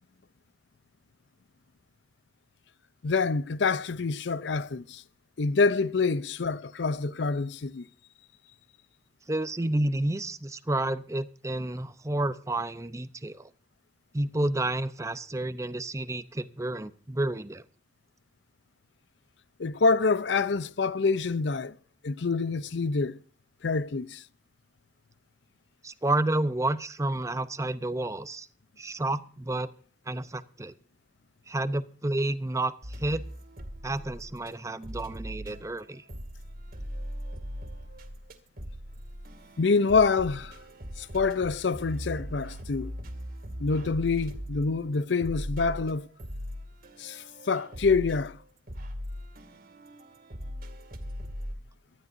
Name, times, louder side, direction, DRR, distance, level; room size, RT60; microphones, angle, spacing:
voice 1, 3.0-5.0 5.4-7.8 19.6-21.8 22.0-23.2 23.6-24.2 39.6-40.5 41.0-42.9 43.6-46.1 47.0-48.4, left 4 dB, 80° left, 0.6 m, -26 dB
voice 2, 9.3-13.5 14.1-17.6 25.8-28.5 28.8-29.7 30.1-30.7 31.5-33.2 33.8-36.0, right 2 dB, 15° right, 0.6 m, -30 dB
sound 1, 32.8-34.5 34.8-51.5, equal, 55° right, 2.3 m, -40 dB
24.0 x 12.5 x 2.6 m
head